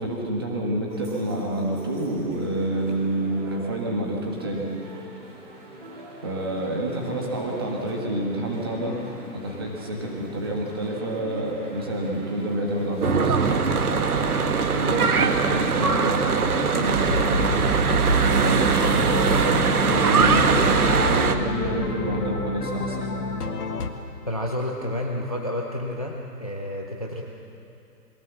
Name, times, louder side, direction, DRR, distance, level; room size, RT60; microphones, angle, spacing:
voice 1, 0.0-5.1 6.2-9.0 9.3-13.4 13.8-17.8 18.2-23.1, right 1 dB, 15° right, -1 dB, 1.4 m, -28 dB
sound 1, 0.9-17.4, equal, 30° right, 3.1 m, -43 dB
Church bell / Traffic noise roadway noise, 13.0-21.4, right 5 dB, 65° right, 1.5 m, -21 dB
sound 2, 17.1-23.9, left 3 dB, 70° left, 1.9 m, -29 dB
voice 2, 24.2-27.2, left 1 dB, 25° left, 1 dB, 0.7 m, -30 dB
22.5 x 17.0 x 7.1 m, 2.8 s
hypercardioid pair, 180°, 48 cm